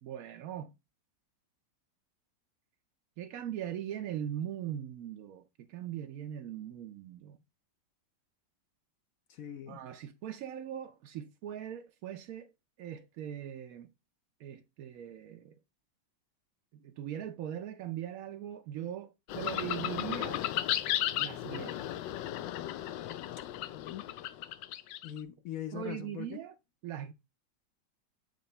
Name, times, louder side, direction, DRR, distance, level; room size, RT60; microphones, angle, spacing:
voice 1, 0.0-0.7 3.2-7.4 9.7-12.5 12.8-13.9 14.4-15.6 16.7-20.4 21.2-22.0 25.7-26.5 26.8-27.1, right 10 dB, 70° right, 0.9 m, -40 dB
voice 2, 9.3-9.8 23.7-24.0 25.0-26.4, left 11 dB, 65° left, 0.9 m, -41 dB
sound 1, 19.3-25.2, left 13 dB, 90° left, 1.3 m, -35 dB
7.8 x 3.1 x 5.4 m
omnidirectional pair, 1.9 m